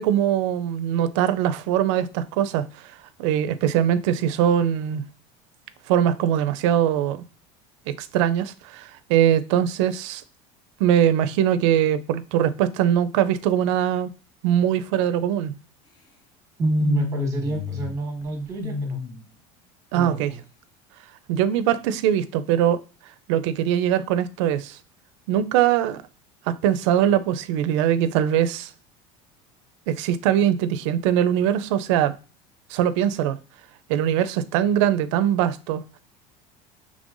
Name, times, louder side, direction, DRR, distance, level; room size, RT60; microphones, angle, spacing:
voice 1, 0.0-2.7 3.2-5.0 5.9-7.2 7.9-10.2 10.8-14.1 14.4-15.5 19.9-20.3 21.3-22.8 23.3-24.8 25.3-26.0 26.5-28.7 29.9-32.1 32.7-33.4 33.9-35.8, right 10 dB, 80° right, 0.4 m, -22 dB
voice 2, 16.6-19.0 19.9-20.4, right 2 dB, 20° right, 1.3 m, -27 dB
sound 1, 16.8-18.0 18.2-19.2, left 4 dB, 25° left, 0.6 m, -29 dB
5.3 x 3.2 x 2.5 m
cardioid pair, 165°, 15 cm